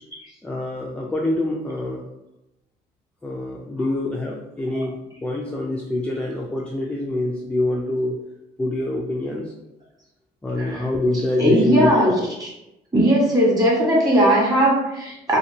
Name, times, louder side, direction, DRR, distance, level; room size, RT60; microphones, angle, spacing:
voice 1, 0.4-2.1 3.2-8.2 8.6-9.5 10.4-12.3, left 1 dB, 5° left, -2 dB, 0.3 m, -25 dB
voice 2, 11.4-12.1 12.4-12.5 12.9-15.4, right 1 dB, 25° right, -5 dB, 1.2 m, -18 dB
2.7 x 2.5 x 2.7 m, 0.91 s
cardioid pair, 110°, 17 cm